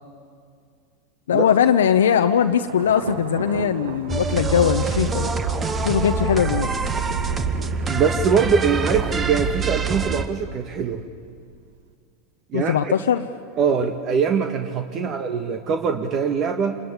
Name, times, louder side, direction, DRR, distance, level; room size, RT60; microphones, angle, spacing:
voice 1, 1.3-5.3 5.8-6.7 12.5-13.3 15.0-15.1, left 8 dB, 80° left, 6 dB, 0.8 m, -20 dB
Thunder, 2.0-11.8, right 6 dB, 70° right, 1.7 m, -36 dB
sound 1, 4.1-10.3, right 4 dB, 25° right, 1.8 m, -25 dB
voice 2, 7.8-11.0 12.5-13.0 13.6-16.8, right 6 dB, 40° right, 6 dB, 1.6 m, -22 dB
27.5 x 21.5 x 9.7 m, 2.3 s
hypercardioid pair, 95°, 0 cm